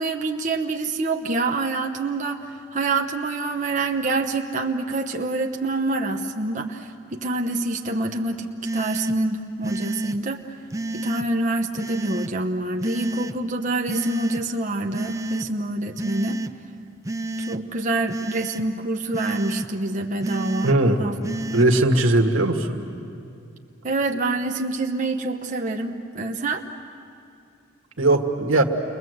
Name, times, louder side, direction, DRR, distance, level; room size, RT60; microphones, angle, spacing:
voice 1, 0.0-8.5 8.7-10.5 10.9-16.4 17.4-20.7 21.0-21.2 21.6-21.8 23.8-26.6, right 2 dB, 40° right, 2 dB, 1.0 m, -26 dB
sound 1, 8.6-9.1 9.6-10.2 10.7-11.3 11.8-12.3 12.8-13.3 13.9-14.4 14.9-15.5 16.0-16.5 17.1-17.6 18.1-18.6 19.1-19.7 20.2-20.8 21.2-21.7, right 2 dB, 15° right, 0.6 m, -29 dB
voice 2, 20.6-21.0 21.5-22.8 28.0-28.6, right 2 dB, 85° right, 3 dB, 1.7 m, -19 dB
29.5 x 22.0 x 7.9 m, 2.5 s
head